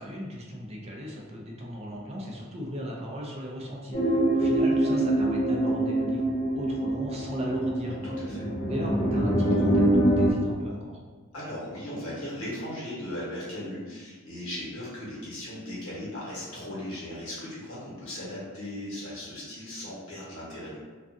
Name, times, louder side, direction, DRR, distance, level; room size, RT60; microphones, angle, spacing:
voice 1, 0.0-6.3 6.5-11.0, equal, 30° right, -2 dB, 0.4 m, -37 dB
sound 1, 3.9-10.3, right 1 dB, 30° left, 0.5 m, -25 dB
voice 2, 8.0-8.4 11.3-20.8, left 1 dB, 80° left, -7 dB, 1.1 m, -37 dB
2.4 x 2.4 x 2.5 m, 1.4 s
head